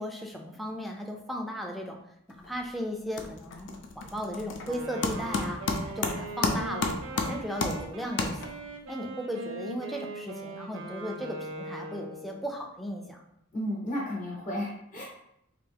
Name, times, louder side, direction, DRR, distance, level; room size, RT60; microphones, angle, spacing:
voice 1, 0.0-2.0 2.4-3.7 4.0-5.6 5.9-6.9 7.2-8.6 8.9-13.3, equal, ahead, 1 dB, 0.4 m, -36 dB
sound 1, 2.3-2.7 2.9-8.8, left 3 dB, 60° left, 0.5 m, -32 dB
Wind instrument woodwind instrument, 4.6-12.5, right 2 dB, 80° right, 0.5 m, -40 dB
voice 2, 13.5-15.0, equal, 40° left, -5 dB, 0.9 m, -33 dB
3.4 x 2.5 x 3.4 m, 0.77 s
head